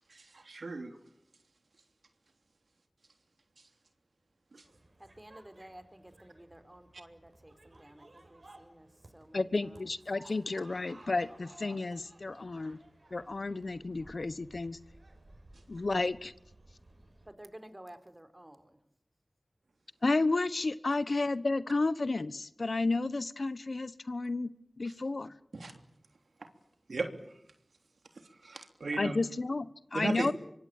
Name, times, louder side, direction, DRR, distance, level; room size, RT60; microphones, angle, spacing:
voice 1, 0.1-1.0 4.5-4.6 25.5-25.7 26.9-27.3 28.4-29.2 29.9-30.3, right 3 dB, 85° right, 6 dB, 3.2 m, -36 dB
sound 1, 4.6-17.3, right 2 dB, 55° right, 6.5 m, -58 dB
voice 2, 5.0-10.0 17.3-18.8, right 1 dB, 20° right, 8 dB, 4.2 m, -53 dB
voice 3, 9.3-12.8 13.1-14.8 15.7-16.3 20.0-24.5 24.8-25.3 28.9-30.3, left 3 dB, 65° left, 15 dB, 1.2 m, -32 dB
25.0 x 24.5 x 9.1 m, 0.73 s
cardioid pair, 40°, 0 cm